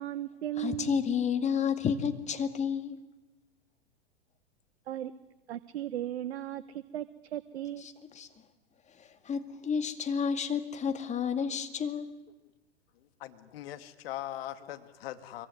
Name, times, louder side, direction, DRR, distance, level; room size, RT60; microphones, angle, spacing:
voice 1, 0.0-1.0 4.9-5.1 5.5-7.8, right 12 dB, 70° right, 13 dB, 1.1 m, -36 dB
voice 2, 0.6-3.0 7.8-8.3 9.0-12.1, left 7 dB, 20° left, 8 dB, 2.2 m, -31 dB
voice 3, 13.0-15.5, left 13 dB, 60° left, 10 dB, 2.3 m, -41 dB
25.0 x 24.0 x 9.7 m, 1.1 s
hypercardioid pair, 115°, 33 cm